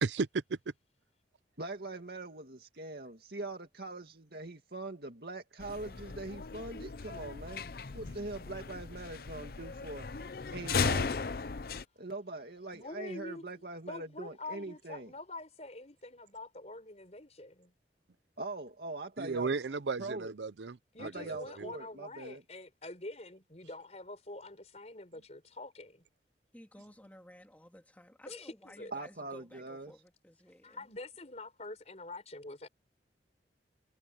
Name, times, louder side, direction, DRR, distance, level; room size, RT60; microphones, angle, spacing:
voice 1, 0.0-0.6 19.2-21.7, right 4 dB, 85° right, 0.6 m, -35 dB
voice 2, 1.6-7.7 7.9-10.1 10.5-11.2 12.0-15.1 18.4-19.6 20.0-20.3 21.0-22.4 28.9-29.9, right 2 dB, 60° right, 2.3 m, -42 dB
sound 1, 5.6-11.8, left 5 dB, 55° left, 0.6 m, -36 dB
voice 3, 12.7-17.7 20.9-26.0 28.3-28.9 30.6-32.7, left 2 dB, 40° left, 4.6 m, -46 dB
voice 4, 26.5-30.9, equal, 10° left, 2.5 m, -55 dB
head